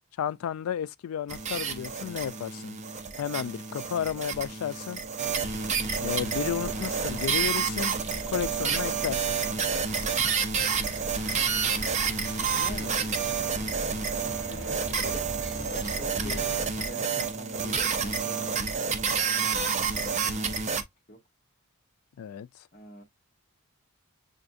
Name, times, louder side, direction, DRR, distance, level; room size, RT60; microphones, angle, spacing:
voice 1, 0.2-2.8 3.1-5.0 6.0-7.9 8.3-9.4 22.2-22.5, left 9 dB, 75° left, 0.3 m, -32 dB
sound 1, 1.3-20.8, right 6 dB, 30° right, 0.5 m, -29 dB
sound 2, 5.3-16.7, left 1 dB, 10° right, 1.6 m, -41 dB
voice 2, 12.5-13.1 14.2-18.7 19.0-19.5 19.9-20.7 21.1-21.2 22.7-23.0, left 1 dB, 40° left, 0.9 m, -45 dB
6.9 x 2.6 x 2.5 m
head